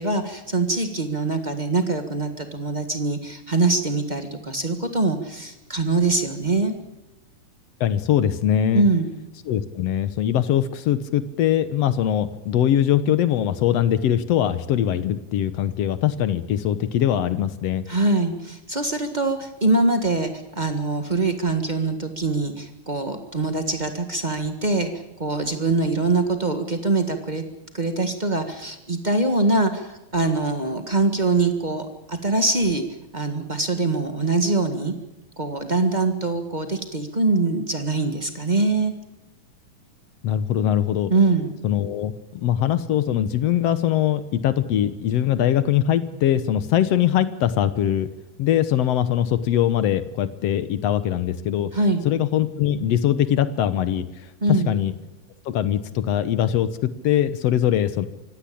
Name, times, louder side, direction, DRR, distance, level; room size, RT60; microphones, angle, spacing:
voice 1, 0.0-6.7 8.7-9.1 17.9-24.9 25.2-27.4 27.7-32.8 33.1-34.9 35.4-38.9 41.1-41.5 51.7-52.0 54.4-54.7, right 3 dB, 35° right, 7 dB, 0.7 m, -23 dB
voice 2, 7.8-8.8 9.5-17.8 40.2-41.1 41.6-48.1 48.4-51.7 52.1-54.1 54.5-54.9 55.5-58.1, left 10 dB, 65° left, 13 dB, 1.7 m, -22 dB
24.5 x 16.5 x 8.6 m, 0.97 s
omnidirectional pair, 3.8 m